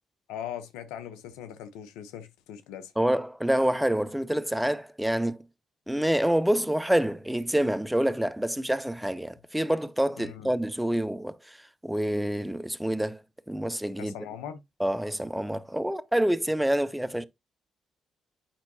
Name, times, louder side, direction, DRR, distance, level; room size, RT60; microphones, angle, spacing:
voice 1, 0.3-2.9 10.2-10.5 14.0-14.6, left 9 dB, 80° left, 0.8 m, -40 dB
voice 2, 3.0-5.4 5.9-11.6 11.8-13.2 13.5-14.1 14.8-17.2, right 1 dB, 5° right, 0.8 m, -27 dB
8.7 x 5.8 x 2.8 m
hypercardioid pair, 45°, 0 cm